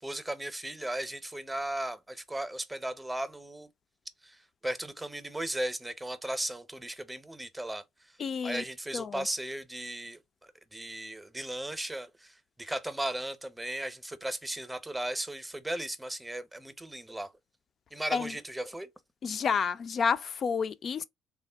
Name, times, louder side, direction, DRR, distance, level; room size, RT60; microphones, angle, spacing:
voice 1, 0.0-3.7 4.2-7.8 8.4-10.2 10.7-17.3 17.9-18.9, right 1 dB, 10° right, 0.7 m, -36 dB
voice 2, 8.2-8.6 8.9-9.3 18.1-18.4 19.2-21.0, left 6 dB, 50° left, 0.5 m, -30 dB
3.6 x 2.1 x 3.4 m
hypercardioid pair, 65°, 0 cm